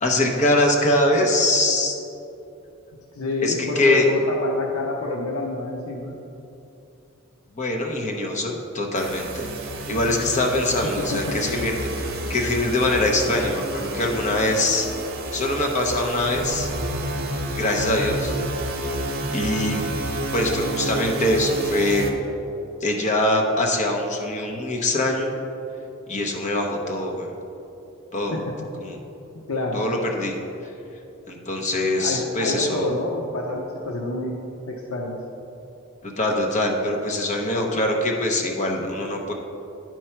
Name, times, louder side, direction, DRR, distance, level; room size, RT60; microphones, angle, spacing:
voice 1, 0.0-2.0 3.4-4.1 7.6-9.5 9.9-14.9 15.3-16.7 17.6-18.3 19.3-19.8 20.3-22.0 22.8-25.3 26.1-27.3 28.1-28.4 28.8-29.0 29.7-30.4 31.3-32.9 36.0-39.3, left 1 dB, 35° left, 1 dB, 0.8 m, -23 dB
voice 2, 3.1-6.2 11.0-11.4 28.3-28.4 29.5-29.9 32.0-34.4 34.7-35.2, left 2 dB, 85° left, -1 dB, 0.7 m, -28 dB
sound 1, 8.9-22.1, right 1 dB, 50° right, 0.7 m, -30 dB
9.7 x 4.6 x 4.4 m, 2.8 s
head